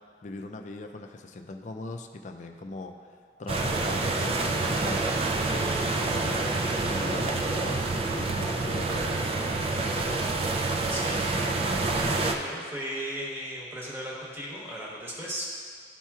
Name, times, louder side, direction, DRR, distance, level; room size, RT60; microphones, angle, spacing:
voice 1, 0.2-5.1 5.4-10.3, left 2 dB, 40° left, 5 dB, 0.4 m, -40 dB
sound 1, 3.5-12.3, right 3 dB, 30° right, 0.4 m, -27 dB
voice 2, 10.9-11.4 11.7-15.5, equal, 15° right, -5 dB, 1.1 m, -37 dB
12.0 x 4.3 x 2.3 m, 2.1 s
head